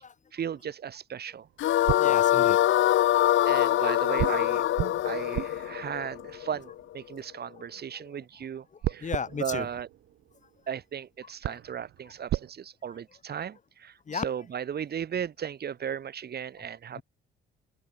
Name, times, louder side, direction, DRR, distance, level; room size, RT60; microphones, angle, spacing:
voice 1, 0.3-1.5 3.5-4.6 5.0-9.9 10.7-17.0, right 8 dB, 55° right, 2.5 m, -36 dB
sound 1, 1.4-3.0 4.2-7.5 8.8-10.7 11.1-11.2 11.4-12.5, right 13 dB, 80° right, 4.1 m, -36 dB
sound 2, 1.6-6.8, left 13 dB, 75° left, 1.4 m, -24 dB
voice 2, 1.8-2.6 3.2-3.3 9.0-9.7 11.5-11.6 14.1-14.2 17.0-17.1, left 6 dB, 40° left, 2.2 m, -34 dB
open air
cardioid pair, 90°, 20 cm